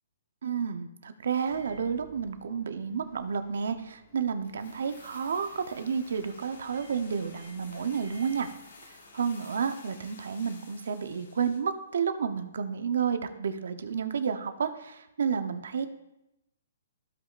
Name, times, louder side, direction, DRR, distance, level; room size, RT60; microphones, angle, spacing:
voice 1, 0.4-8.5 9.1-15.9, right 6 dB, 70° right, 9 dB, 0.8 m, -31 dB
Microwave oven, 1.3-9.5, equal, 15° left, 1.2 m, -56 dB
sound 1, 4.4-11.7 12.0-12.1, left 3 dB, 70° left, 1.6 m, -52 dB
15.5 x 5.3 x 2.5 m, 0.90 s
hypercardioid pair, 175°, 0 cm